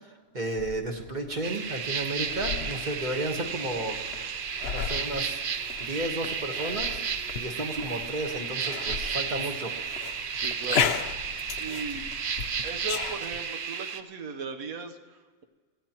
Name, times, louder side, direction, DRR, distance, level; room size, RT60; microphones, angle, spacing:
voice 1, 0.3-4.0 4.7-5.4 5.9-9.7, right 1 dB, 35° right, 3 dB, 1.3 m, -33 dB
sound 1, 0.6-13.4, left 7 dB, 55° left, 0.8 m, -36 dB
sound 2, 1.4-14.0, right 6 dB, 55° right, 0.6 m, -33 dB
voice 2, 10.3-11.1 11.6-12.1 12.6-15.4, right 5 dB, 75° right, 6 dB, 1.4 m, -38 dB
23.5 x 15.5 x 3.0 m, 1.4 s
omnidirectional pair, 1.5 m